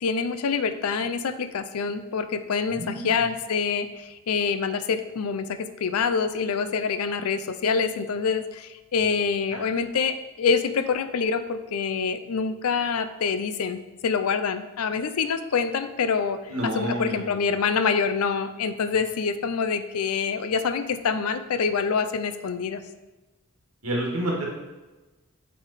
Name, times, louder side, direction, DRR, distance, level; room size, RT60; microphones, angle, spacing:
voice 1, 0.0-16.4 16.7-22.8, left 5 dB, 90° left, 11 dB, 0.5 m, -26 dB
voice 2, 2.7-3.1 9.5-9.6 16.5-17.3 23.8-24.4, right 1 dB, 90° right, -2 dB, 1.9 m, -29 dB
8.4 x 3.5 x 4.1 m, 1.2 s
head